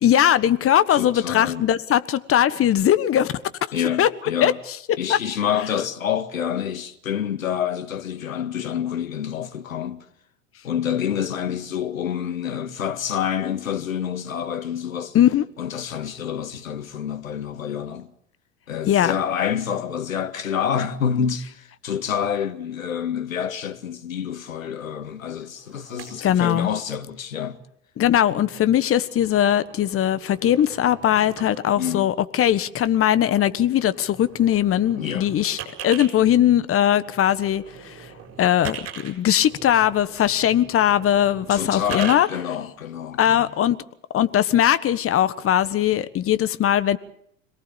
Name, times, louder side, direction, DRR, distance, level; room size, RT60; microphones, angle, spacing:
voice 1, 0.0-3.3 4.0-4.1 4.4-4.5 5.1-5.2 15.1-15.4 18.9-19.1 26.2-26.7 28.0-38.1 38.4-42.3 43.2-43.8 44.1-47.0, left 11 dB, 35° left, 1.5 m, -20 dB
voice 2, 0.9-1.7 3.7-4.6 5.0-10.1 10.6-15.2 15.6-18.1 18.7-27.6 28.3-28.5 31.8-32.1 35.0-35.3 41.5-43.5, left 8 dB, 80° left, 2.0 m, -28 dB
sound 1, 25.6-26.8 27.4-27.6 28.6-31.7 33.4-33.5 33.7-36.1 36.8-42.2, right 8 dB, 35° right, 7.5 m, -40 dB
26.5 x 18.5 x 7.0 m
hypercardioid pair, 85°, 40 cm